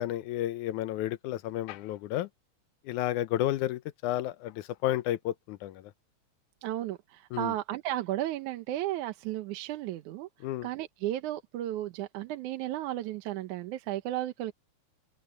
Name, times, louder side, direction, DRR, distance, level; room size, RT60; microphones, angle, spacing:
voice 1, 0.0-2.3 2.8-5.9 7.3-7.5 10.4-10.7, left 14 dB, 85° left, 2.2 m, -32 dB
voice 2, 6.6-10.3 10.6-14.5, right 14 dB, 85° right, 2.4 m, -34 dB
open air
omnidirectional pair, 3.4 m